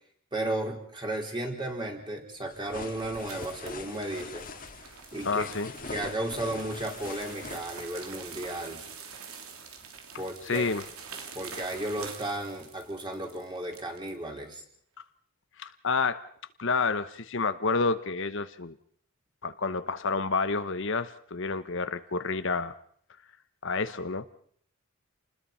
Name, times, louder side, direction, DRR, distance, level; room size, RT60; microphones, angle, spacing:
voice 1, 0.3-4.5 5.1-5.5 5.9-8.8 10.2-10.7 11.3-14.6, right 1 dB, 20° right, 1 dB, 4.5 m, -34 dB
sound 1, 2.4-14.2, right 5 dB, 75° right, 3.5 m, -46 dB
sound 2, 2.5-8.4, left 4 dB, 40° left, 2.0 m, -43 dB
voice 2, 5.2-5.7 10.4-10.8 15.6-16.2 16.6-18.8 19.4-22.7 23.6-24.4, left 4 dB, 55° left, 11 dB, 1.0 m, -29 dB
28.5 x 20.5 x 5.6 m, 0.63 s
head